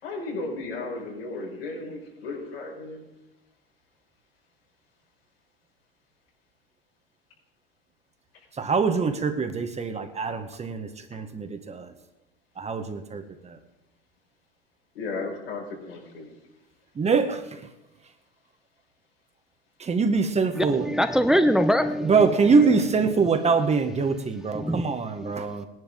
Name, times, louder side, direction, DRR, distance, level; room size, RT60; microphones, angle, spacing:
voice 1, 0.0-3.0 14.9-16.3, left 3 dB, 80° left, -1 dB, 5.0 m, -34 dB
voice 2, 8.5-11.9 12.6-13.6 16.9-17.7 19.8-20.9 22.0-25.7, right 5 dB, 20° right, 8 dB, 1.3 m, -24 dB
voice 3, 20.6-22.3 24.5-24.9 25.2-25.4, equal, ahead, 9 dB, 0.7 m, -23 dB
19.0 x 11.0 x 3.8 m, 0.96 s
hypercardioid pair, 80°, 30 cm